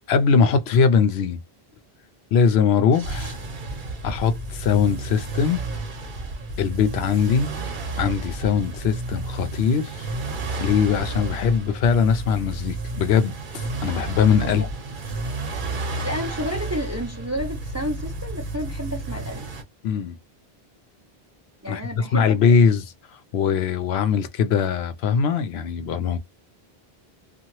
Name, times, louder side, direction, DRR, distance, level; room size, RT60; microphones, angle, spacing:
voice 1, 0.1-1.4 2.3-3.4 4.0-5.6 6.6-7.5 8.0-10.1 10.6-14.6 19.8-20.2 21.7-22.9 23.3-26.2, left 6 dB, 85° left, 0.8 m, -21 dB
sound 1, 2.9-19.6, right 2 dB, 55° right, 0.9 m, -31 dB
voice 2, 16.0-19.5 21.6-22.5, equal, 25° right, 0.4 m, -31 dB
2.7 x 2.4 x 3.0 m
omnidirectional pair, 1.0 m